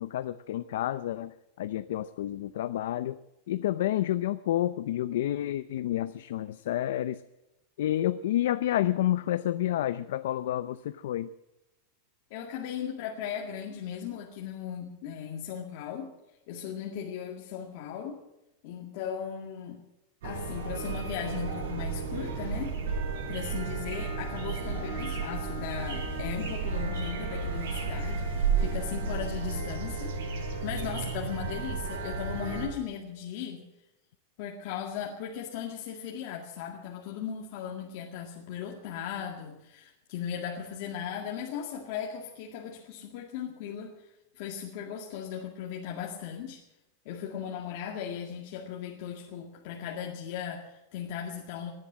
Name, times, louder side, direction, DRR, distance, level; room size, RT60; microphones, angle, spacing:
voice 1, 0.0-3.2 3.5-7.2 7.8-11.3, left 13 dB, 75° left, 13 dB, 0.6 m, -29 dB
voice 2, 12.3-16.1 16.5-18.2 18.6-19.8 20.2-22.8 23.3-33.6 34.4-44.1 44.4-46.6 47.1-51.7, left 8 dB, 50° left, -1 dB, 2.0 m, -37 dB
sound 1, 20.2-32.7, right 4 dB, 75° right, 7.8 m, -33 dB
17.5 x 11.0 x 7.5 m, 0.92 s
supercardioid pair, 170°, 0 cm